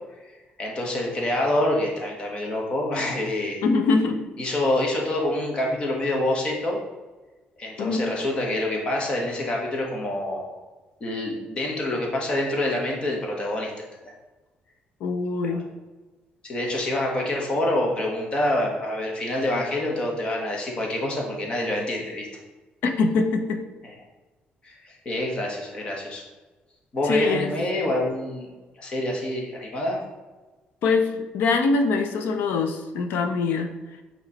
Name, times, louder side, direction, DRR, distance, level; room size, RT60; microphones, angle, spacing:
voice 1, 0.6-3.6 4.4-6.8 7.6-10.5 11.0-13.7 14.0-14.1 15.4-15.6 16.4-22.3 23.8-23.9 24.6-26.2 26.9-28.5 28.8-30.0, left 1 dB, 30° left, -1 dB, 1.3 m, -26 dB
voice 2, 3.6-4.2 7.8-8.0 15.0-15.6 22.8-23.6 27.0-27.5 30.8-33.7, left 4 dB, 80° left, 6 dB, 0.7 m, -23 dB
8.0 x 3.2 x 4.2 m, 1.2 s
cardioid pair, 165°, 3 cm